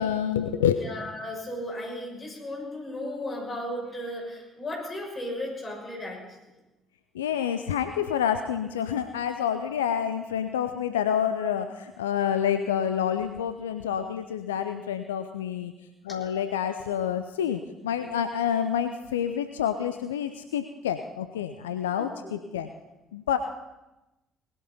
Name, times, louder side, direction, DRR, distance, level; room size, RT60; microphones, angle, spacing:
voice 1, 0.0-0.8 7.1-15.7 16.0-22.7 23.1-23.4, left 9 dB, 80° left, 9 dB, 0.5 m, -28 dB
voice 2, 0.5-6.2 22.0-22.1, left 1 dB, 30° left, -2 dB, 6.4 m, -35 dB
19.5 x 12.0 x 5.5 m, 1.0 s
figure-of-eight pair, 50°, 0 cm